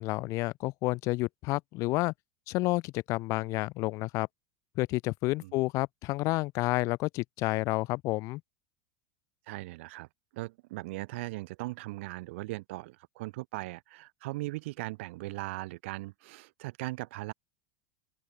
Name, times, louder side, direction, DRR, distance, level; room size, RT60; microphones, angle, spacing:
voice 1, 0.0-2.1 2.5-4.3 4.8-8.4, left 21 dB, 50° left, 0.4 m, -30 dB
voice 2, 9.5-17.3, right 21 dB, 75° right, 1.0 m, -39 dB
open air
supercardioid pair, 120°, 7 cm